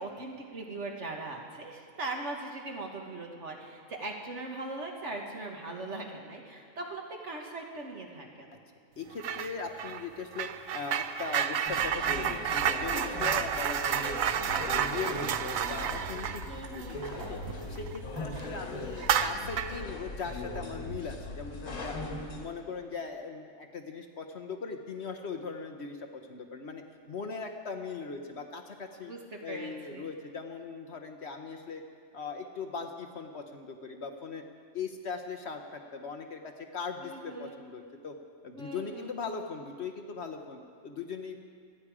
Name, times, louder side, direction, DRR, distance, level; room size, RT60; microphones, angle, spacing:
voice 1, 0.0-8.6 16.5-17.0 29.0-30.1 37.0-37.6 38.5-39.1, right 2 dB, 60° right, 1 dB, 1.8 m, -40 dB
voice 2, 9.0-14.2 14.4-17.4 17.7-22.1 22.4-26.8 27.1-29.1 29.4-31.8 32.1-34.4 34.7-38.1 38.4-41.4, left 5 dB, 55° left, 5 dB, 1.1 m, -39 dB
sound 1, 9.2-9.5 9.8-18.0 18.3-18.5 19.0-19.8, right 8 dB, 75° right, 1.0 m, -31 dB
sound 2, 11.6-22.4, left 2 dB, 90° left, 2.2 m, -39 dB
26.0 x 9.9 x 4.9 m, 2.1 s
omnidirectional pair, 1.4 m